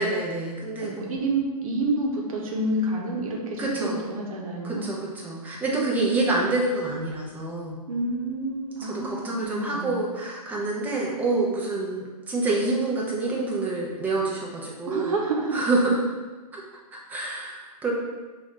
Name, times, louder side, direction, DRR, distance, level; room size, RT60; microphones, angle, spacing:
voice 1, 0.0-1.1 3.6-4.0 4.6-5.0 5.2-7.8 8.8-15.1 15.5-16.0 16.5-16.6 16.9-17.9, right 2 dB, 10° right, -4 dB, 0.6 m, -27 dB
voice 2, 0.8-4.9 7.9-10.0 14.9-15.6, right 2 dB, 60° right, -1 dB, 1.0 m, -29 dB
5.5 x 2.6 x 3.2 m, 1.3 s
hypercardioid pair, 145°, 20 cm